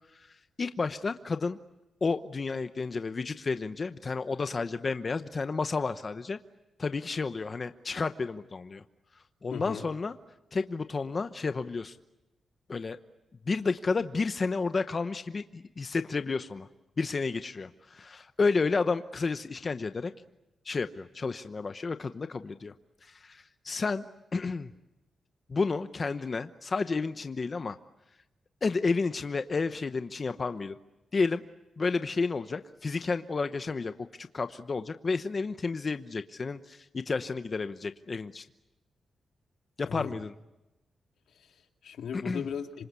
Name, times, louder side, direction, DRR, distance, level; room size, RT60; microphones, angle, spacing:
voice 1, 0.6-1.6 2.0-6.4 6.8-8.8 9.4-10.1 10.5-12.0 12.7-13.0 13.5-16.7 17.0-20.1 20.6-22.7 23.0-24.0 24.3-24.7 25.5-27.8 28.6-30.7 31.1-31.4 31.8-38.4 39.8-40.3 42.1-42.4, left 4 dB, 35° left, 9 dB, 0.9 m, -31 dB
voice 2, 9.5-9.8 39.8-40.1 41.3-42.9, left 7 dB, 90° left, 5 dB, 2.4 m, -38 dB
27.0 x 25.5 x 8.4 m, 0.97 s
wide cardioid pair, 125°, 0 cm